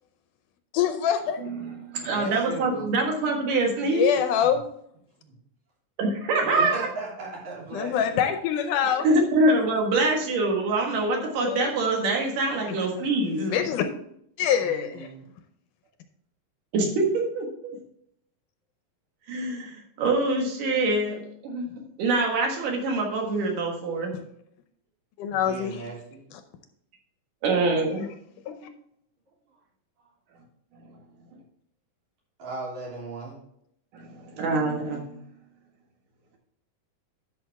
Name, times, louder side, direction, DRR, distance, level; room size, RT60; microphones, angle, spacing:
voice 1, 0.7-1.5 3.9-4.6 7.7-9.1 11.4-11.7 13.0-13.1 13.4-13.9 14.4-15.1 25.2-25.9 26.3-26.4 28.5-28.7, left 9 dB, 75° left, 8 dB, 2.1 m, -25 dB
voice 2, 1.4-4.1 6.0-6.9 9.0-13.5 16.7-17.5 19.3-21.7 22.0-24.1 27.4-28.0 33.9-35.2, right 2 dB, 75° right, 1 dB, 3.1 m, -25 dB
voice 3, 2.0-2.9 5.2-5.3 6.4-8.3 14.6-15.2 25.5-26.2 32.4-33.4, right 3 dB, 55° right, -4 dB, 4.4 m, -37 dB
11.5 x 6.2 x 3.4 m, 0.71 s
omnidirectional pair, 3.9 m